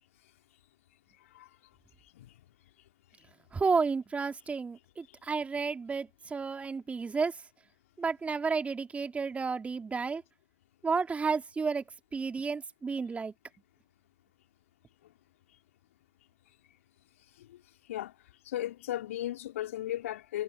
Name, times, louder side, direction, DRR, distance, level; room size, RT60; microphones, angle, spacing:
voice 1, 3.5-7.3 8.0-10.2 10.8-11.8 12.1-13.3, right 5 dB, 15° right, 2.7 m, -31 dB
voice 2, 18.4-20.4, left 13 dB, 65° left, 2.8 m, -35 dB
figure-of-eight pair, 90°, 8 cm